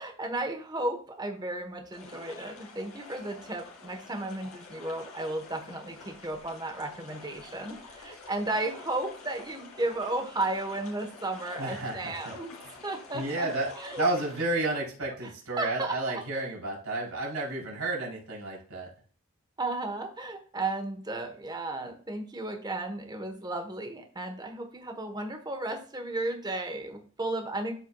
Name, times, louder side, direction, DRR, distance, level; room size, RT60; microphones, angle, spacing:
voice 1, 0.0-12.5 12.8-13.5 13.8-14.0 15.6-16.2 19.6-27.8, right 2 dB, 20° right, 4 dB, 1.1 m, -34 dB
sound 1, 1.9-14.4, left 3 dB, 80° left, 2.3 m, -48 dB
voice 2, 11.6-12.3 12.6-12.7 13.1-13.7 14.0-18.9, right 2 dB, 90° right, -3 dB, 4.0 m, -31 dB
12.5 x 4.5 x 2.3 m, 0.43 s
head